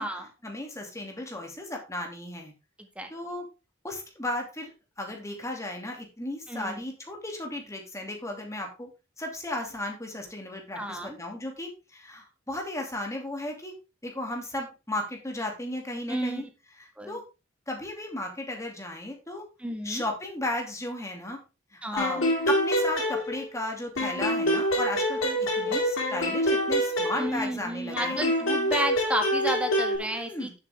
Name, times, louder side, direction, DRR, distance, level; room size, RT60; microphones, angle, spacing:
voice 1, 0.4-2.5 3.1-3.5 3.8-4.7 5.0-8.9 9.2-13.7 14.0-16.4 16.8-17.2 17.7-19.4 19.8-21.4 21.7-28.2 30.0-30.5, left 1 dB, 15° left, 2 dB, 2.7 m, -35 dB
voice 2, 2.8-3.1 6.5-6.8 10.7-11.2 16.1-16.4 17.0-17.2 19.6-20.0 21.8-22.2 27.2-30.5, right 1 dB, 5° right, 5 dB, 1.7 m, -32 dB
sound 1, 22.0-23.7 24.0-27.6 28.0-30.0, equal, 90° left, 3.4 m, -26 dB
9.8 x 7.8 x 3.6 m, 0.30 s
head